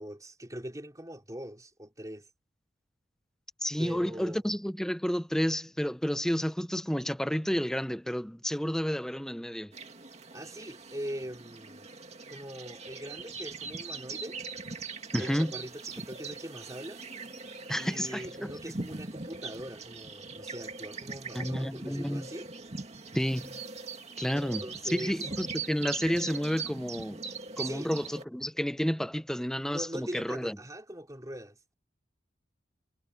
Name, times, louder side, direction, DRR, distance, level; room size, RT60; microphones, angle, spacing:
voice 1, 0.0-2.3 3.8-4.4 10.3-11.9 12.3-14.4 15.2-17.0 17.8-22.5 24.6-25.2 27.6-27.9 29.7-31.6, equal, 15° right, 4.6 m, -41 dB
voice 2, 3.6-9.7 15.1-15.5 17.7-18.5 21.3-22.3 23.1-23.6 24.2-24.6 24.9-27.2 27.6-30.6, equal, 5° left, 0.6 m, -31 dB
sound 1, 9.7-28.2, right 4 dB, 35° right, 2.1 m, -41 dB
head